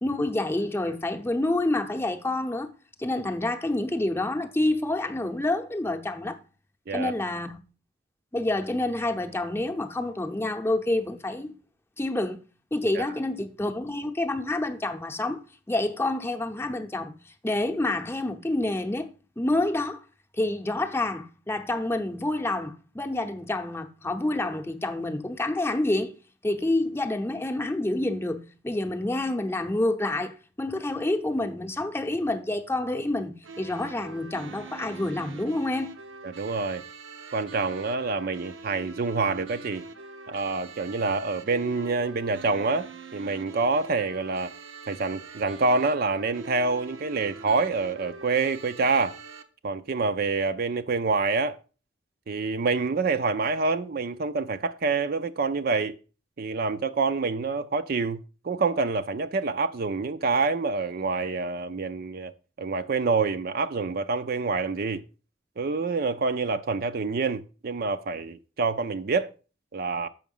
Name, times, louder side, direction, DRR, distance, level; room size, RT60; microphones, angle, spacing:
voice 1, 0.0-2.7 3.0-6.4 6.9-7.6 8.3-11.6 12.0-12.4 12.7-15.4 15.7-20.0 20.4-26.1 26.4-35.9, left 2 dB, 10° left, 0.7 m, -28 dB
sound 1, 33.4-49.4, right 4 dB, 85° right, 0.8 m, -44 dB
voice 2, 36.2-36.8 37.3-39.8 40.3-44.5 44.9-49.2 49.6-51.6 52.3-56.0 56.4-62.3 62.6-65.0 65.6-69.3 69.7-70.1, right 4 dB, 50° right, 0.5 m, -27 dB
7.2 x 5.7 x 5.4 m
head